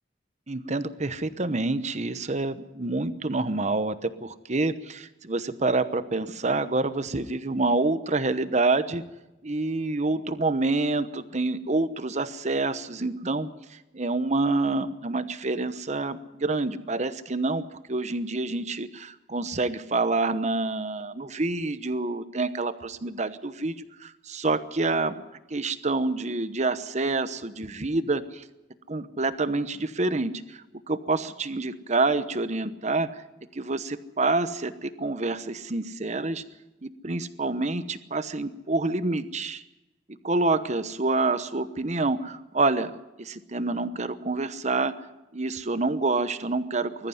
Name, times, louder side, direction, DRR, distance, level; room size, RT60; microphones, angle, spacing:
voice 1, 0.5-9.0 9.4-17.6 17.9-23.7 24.0-25.2 25.5-28.4 28.9-33.2 33.5-36.4 36.8-39.6 40.2-42.9 43.2-44.9 45.3-47.1, right 3 dB, 40° right, 13 dB, 1.0 m, -27 dB
20.5 x 14.5 x 9.5 m, 1.0 s
head